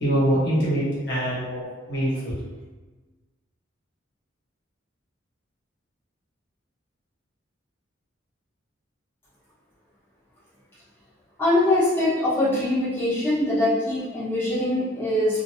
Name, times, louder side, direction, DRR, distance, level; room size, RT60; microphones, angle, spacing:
voice 1, 0.0-2.3, right 1 dB, 60° left, -8 dB, 1.2 m, -24 dB
voice 2, 11.4-15.4, left 1 dB, 10° left, -12 dB, 1.0 m, -23 dB
2.9 x 2.6 x 2.8 m, 1.2 s
head